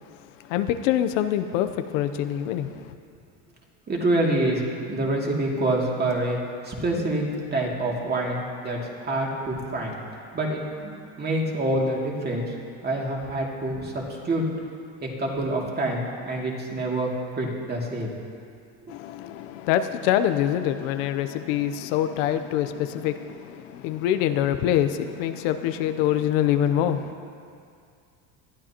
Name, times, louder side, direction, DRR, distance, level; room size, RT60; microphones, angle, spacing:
voice 1, 0.5-2.9 18.9-27.1, left 11 dB, 85° left, 9 dB, 0.8 m, -25 dB
voice 2, 3.9-4.6 4.9-6.4 6.6-7.2 7.5-8.8 9.1-10.0 10.3-12.5 12.8-14.4 15.0-17.1 17.4-18.1, right 1 dB, 25° right, -2 dB, 2.5 m, -26 dB
20.0 x 12.5 x 2.9 m, 2.3 s
cardioid pair, 125°, 37 cm